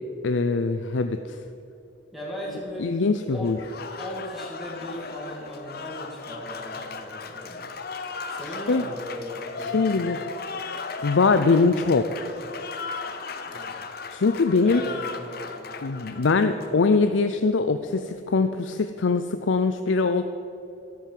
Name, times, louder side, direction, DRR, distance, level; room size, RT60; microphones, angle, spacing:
voice 1, 0.2-1.2 2.8-3.6 8.7-8.8 9.7-10.2 10.6-10.7 11.0-12.2 14.1-14.8 15.8-20.2, left 4 dB, 80° left, 8 dB, 0.5 m, -22 dB
voice 2, 2.1-2.9 3.2-3.5 4.0-7.7 8.3-10.1 13.4-13.8 14.6-15.8, equal, ahead, -5 dB, 2.6 m, -38 dB
Applause, 3.4-17.1, left 4 dB, 55° left, 0.9 m, -36 dB
12.5 x 9.2 x 7.6 m, 2.8 s
head